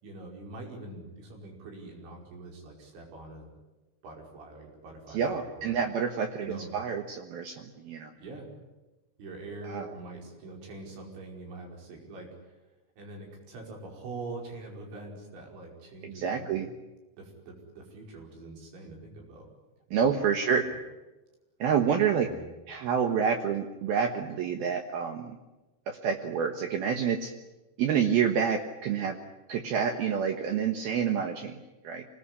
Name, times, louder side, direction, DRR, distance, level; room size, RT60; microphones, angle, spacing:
voice 1, 0.0-3.5 4.0-5.8 6.4-6.8 8.2-8.5 9.2-12.6 13.0-16.5 17.2-19.5 19.9-20.2 22.2-22.5, right 2 dB, 85° right, 1 dB, 7.5 m, -44 dB
voice 2, 5.1-8.1 9.7-9.9 16.0-16.7 19.9-20.7 21.6-22.3 22.7-25.4 25.9-27.3 27.8-29.2 29.5-32.1, right 7 dB, 65° right, 5 dB, 2.8 m, -28 dB
25.5 x 20.0 x 9.9 m, 1.1 s
omnidirectional pair, 5.2 m